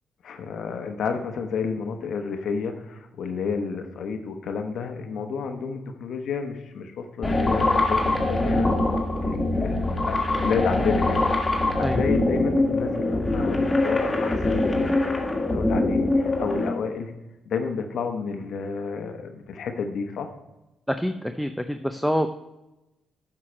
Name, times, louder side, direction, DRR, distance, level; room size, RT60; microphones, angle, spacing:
voice 1, 0.2-8.7 9.2-17.1 17.5-20.3, left 5 dB, 70° left, 5 dB, 0.9 m, -31 dB
sound 1, 7.2-16.7, left 2 dB, 25° left, 1.8 m, -23 dB
voice 2, 20.9-22.4, equal, ahead, 7 dB, 0.5 m, -26 dB
9.6 x 5.8 x 4.4 m, 0.98 s
supercardioid pair, 65°, 0 cm